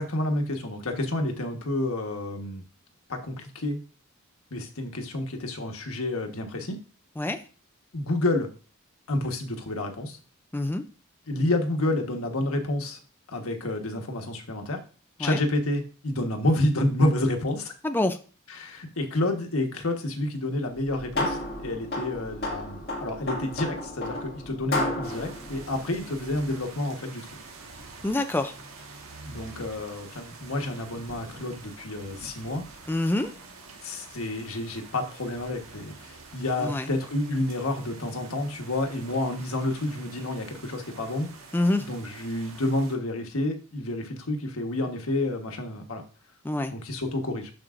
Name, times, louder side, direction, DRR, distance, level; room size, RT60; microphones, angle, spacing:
voice 1, 0.0-2.6 3.1-3.8 4.5-6.8 7.9-8.5 9.1-10.2 11.3-13.0 13.3-14.8 15.2-17.7 18.5-27.2 29.2-32.6 33.8-41.3 41.8-46.0 46.7-47.5, left 1 dB, 85° left, 4 dB, 1.4 m, -29 dB
voice 2, 10.5-10.8 15.2-15.4 17.8-18.2 28.0-28.5 32.9-33.3 36.6-36.9 41.5-41.8 46.4-46.7, left 2 dB, 10° left, 7 dB, 0.4 m, -26 dB
sound 1, 20.7-26.6, left 1 dB, 50° left, 2.1 m, -33 dB
sound 2, 25.0-43.0, right 3 dB, 85° right, 1.5 m, -46 dB
12.0 x 4.6 x 2.5 m, 0.37 s
head